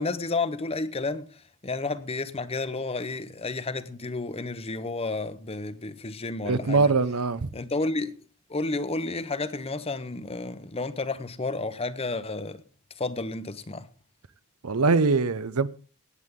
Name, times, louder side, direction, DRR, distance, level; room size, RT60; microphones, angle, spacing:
voice 1, 0.0-6.9 7.5-8.2 8.5-12.6 13.0-13.9, left 3 dB, 25° left, 0.8 m, -31 dB
voice 2, 6.4-7.5 14.6-15.7, right 4 dB, 80° right, 0.7 m, -22 dB
18.0 x 8.3 x 3.7 m
head